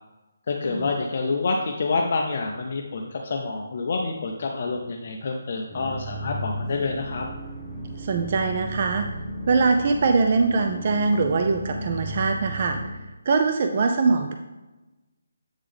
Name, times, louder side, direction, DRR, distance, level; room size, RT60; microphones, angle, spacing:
voice 1, 0.5-7.3, left 3 dB, 45° left, 2 dB, 0.5 m, -27 dB
sound 1, 5.7-12.9, right 1 dB, 5° left, 1.3 m, -35 dB
voice 2, 8.0-9.1 9.5-12.8 13.3-14.3, right 4 dB, 40° right, 5 dB, 0.3 m, -22 dB
8.0 x 3.7 x 3.4 m, 1.1 s
hypercardioid pair, 170°, 0 cm